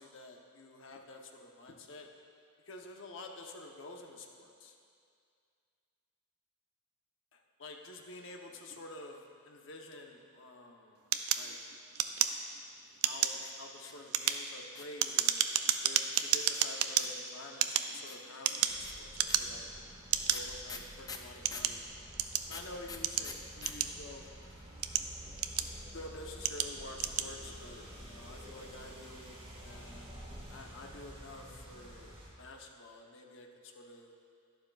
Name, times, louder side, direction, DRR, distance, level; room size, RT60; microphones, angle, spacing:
voice 1, 0.0-2.1 2.7-4.7 7.3-11.0 11.3-11.6 12.1-12.4 13.0-15.4 15.8-19.7 20.0-21.9 22.5-24.2 25.9-30.2 30.5-34.1, left 2 dB, 55° left, 2 dB, 0.8 m, -49 dB
sound 1, 11.1-12.7 13.0-13.4 14.0-17.0 17.5-18.8 19.1-19.7 20.1-20.4 21.0-22.5 23.0-24.2 24.7-25.9 26.4-26.7 27.0-27.3, right 10 dB, 85° right, 0.5 m, -31 dB
Spray Bottle, 13.4-15.0 15.7-17.3 18.1-21.8 22.5-23.7 24.0-24.1 24.3-24.7, left 5 dB, 15° left, 0.4 m, -47 dB
sound 2, 18.7-32.3, right 1 dB, 25° right, 1.4 m, -50 dB
11.5 x 11.5 x 2.4 m, 2.3 s
head